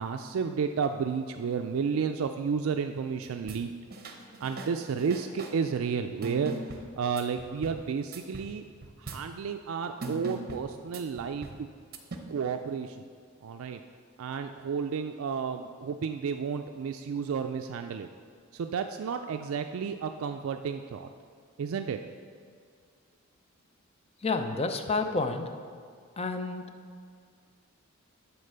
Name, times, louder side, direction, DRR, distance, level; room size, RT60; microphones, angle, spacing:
voice 1, 0.0-3.7 4.4-6.5 7.0-8.6 9.0-11.7 12.3-13.0 13.4-13.8 14.2-18.1 18.5-21.1 21.6-22.0, right 6 dB, 70° right, 6 dB, 0.3 m, -32 dB
sound 1, 3.2-3.6 3.9-5.6 6.2-7.8 8.1-8.5 8.8-9.3 10.0-11.6 11.9-12.2, right 2 dB, 45° right, 0.8 m, -40 dB
voice 2, 24.2-25.5 26.2-26.6, left 3 dB, 30° left, 7 dB, 0.5 m, -29 dB
9.9 x 4.5 x 6.6 m, 2.1 s
head